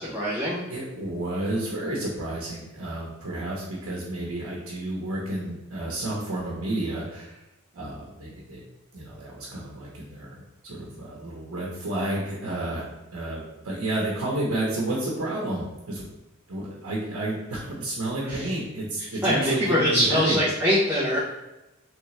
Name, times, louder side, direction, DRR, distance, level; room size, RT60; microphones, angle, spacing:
voice 1, 0.1-0.6 18.2-18.5 19.0-21.2, equal, 10° right, -12 dB, 1.1 m, -23 dB
voice 2, 0.7-7.4 7.7-8.6 8.9-12.9 13.1-16.1 16.5-20.4, right 1 dB, 90° right, -3 dB, 0.9 m, -31 dB
3.8 x 3.4 x 3.2 m, 0.96 s
head